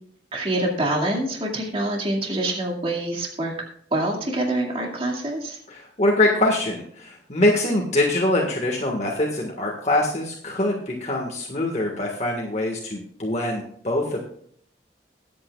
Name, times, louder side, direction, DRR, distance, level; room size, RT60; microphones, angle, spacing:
voice 1, 0.3-3.5 3.9-5.6, right 1 dB, 30° right, -1 dB, 2.2 m, -25 dB
voice 2, 5.7-14.3, left 1 dB, 40° left, -1 dB, 1.6 m, -23 dB
22.0 x 8.6 x 2.4 m, 0.63 s
head